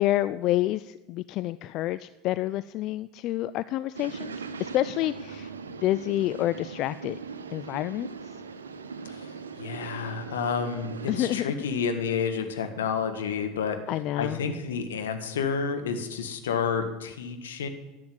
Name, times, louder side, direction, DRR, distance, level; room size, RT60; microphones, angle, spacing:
voice 1, 0.0-4.3 4.6-5.5 5.8-7.2 7.5-8.1 11.1-11.5 13.9-14.4, left 15 dB, 50° left, 15 dB, 0.3 m, -28 dB
sound 1, 3.9-11.4, right 5 dB, 80° right, 0.8 m, -40 dB
voice 2, 9.6-13.8 14.2-17.7, left 6 dB, 75° left, 6 dB, 1.5 m, -30 dB
11.5 x 7.7 x 9.3 m, 1.0 s
figure-of-eight pair, 75°, 0 cm